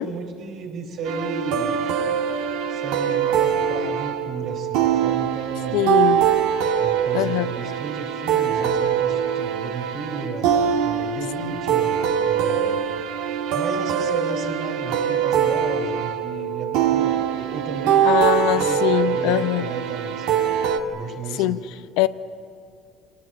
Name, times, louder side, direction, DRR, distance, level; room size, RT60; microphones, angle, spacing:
voice 1, 0.0-1.9 2.7-5.8 6.5-12.8 13.5-18.1 18.5-20.4 20.9-21.6, right 4 dB, 60° right, 3 dB, 4.0 m, -33 dB
sound 1, 1.1-20.8, right 8 dB, 85° right, 1.7 m, -23 dB
voice 2, 5.7-6.3 7.1-7.5 11.4-11.6 18.0-19.7 21.4-22.1, left 15 dB, 85° left, 12 dB, 0.7 m, -22 dB
26.5 x 19.0 x 9.0 m, 2.6 s
cardioid pair, 115°, 0 cm